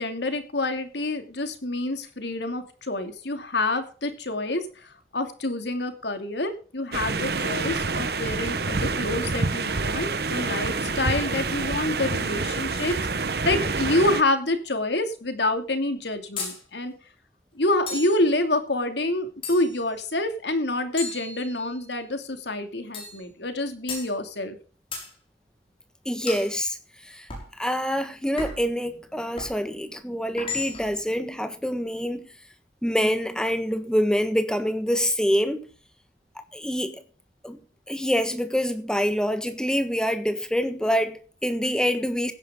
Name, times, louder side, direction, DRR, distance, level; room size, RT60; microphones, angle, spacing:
voice 1, 0.0-4.7 5.1-16.9 17.6-24.6, left 2 dB, 75° left, 2.6 m, -27 dB
sound 1, 6.9-14.2, right 3 dB, 60° right, 1.1 m, -27 dB
sound 2, 16.4-16.6 17.9-18.2 19.4-19.9 21.0-21.9 22.9-23.2 23.9-24.1 24.9-25.1 26.3-26.5 27.3-27.5 28.4-28.7 29.4-29.6 30.4-31.0, left 4 dB, 30° left, 6.3 m, -35 dB
voice 2, 26.0-26.8 27.0-27.3 27.6-32.3 32.8-35.6 36.5-37.0 37.4-37.6 37.9-42.3, equal, 5° left, 1.4 m, -26 dB
16.5 x 10.5 x 3.8 m
head